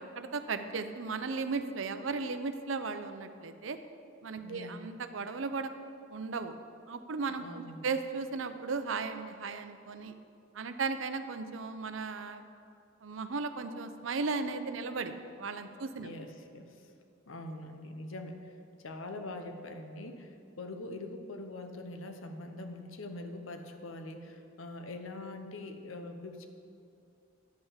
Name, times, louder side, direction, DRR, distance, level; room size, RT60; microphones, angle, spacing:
voice 1, 0.0-3.8 4.2-5.7 6.1-6.5 6.9-10.1 10.5-12.4 13.0-16.1, right 4 dB, 70° right, 9 dB, 0.6 m, -36 dB
voice 2, 4.4-4.8 7.4-7.9 16.0-16.9 17.3-18.6 18.8-26.5, left 2 dB, 75° left, 6 dB, 0.9 m, -43 dB
10.0 x 5.6 x 7.3 m, 2.5 s
head